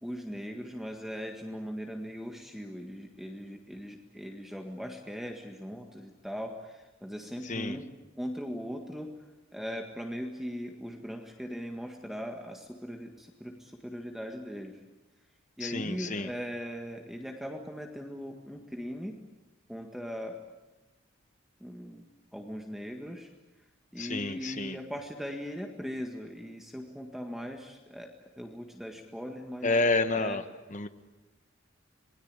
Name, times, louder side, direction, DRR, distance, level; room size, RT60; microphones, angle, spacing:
voice 1, 0.0-7.9 8.2-9.1 9.5-14.8 15.6-19.2 19.7-20.4 21.6-23.3 23.9-29.8 30.2-30.4, equal, ahead, 2 dB, 1.7 m, -39 dB
voice 2, 7.4-7.8 15.6-16.3 24.0-24.8 29.6-30.4 30.7-30.9, left 3 dB, 35° left, 9 dB, 1.4 m, -29 dB
27.0 x 21.0 x 8.9 m, 1.1 s
head